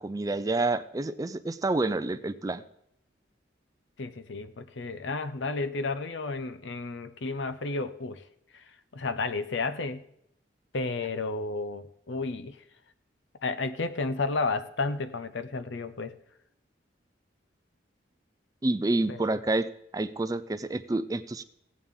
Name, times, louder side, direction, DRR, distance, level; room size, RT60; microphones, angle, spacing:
voice 1, 0.0-2.6 18.6-19.7 19.9-21.4, right 2 dB, 20° right, 12 dB, 0.4 m, -28 dB
voice 2, 4.0-8.2 8.5-10.0 10.7-12.6 13.4-16.1 19.1-19.2, left 3 dB, 75° left, 11 dB, 0.7 m, -32 dB
16.0 x 8.5 x 3.7 m, 0.76 s
head